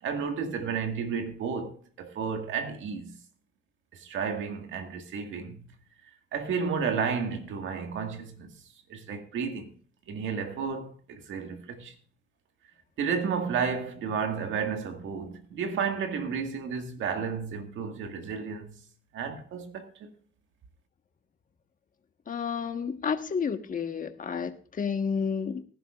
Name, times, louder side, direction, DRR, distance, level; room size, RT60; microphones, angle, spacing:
voice 1, 0.0-3.2 3.9-5.6 6.3-8.6 8.9-9.8 10.1-11.9 13.0-18.8 19.1-20.1, right 6 dB, 75° right, 1.9 m, -32 dB
voice 2, 22.3-25.6, left 6 dB, 40° left, 1.4 m, -31 dB
19.0 x 11.0 x 2.5 m
cardioid pair, 90°, 20 cm